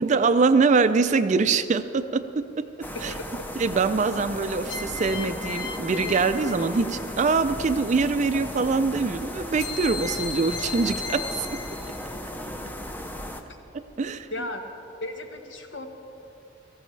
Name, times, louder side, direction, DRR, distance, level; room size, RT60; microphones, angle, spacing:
voice 1, 0.0-3.1 3.6-11.6 13.7-14.3, right 4 dB, 40° right, 11 dB, 0.4 m, -24 dB
sound 1, 1.6-2.2 4.7-7.3 9.6-12.2, left 4 dB, 85° left, 0.9 m, -36 dB
sound 2, 2.8-13.4, left 1 dB, 10° left, 0.6 m, -36 dB
voice 2, 2.9-3.3 14.3-14.6 15.0-15.9, left 1 dB, 65° left, 4 dB, 1.2 m, -35 dB
17.5 x 14.5 x 3.3 m, 2.7 s
head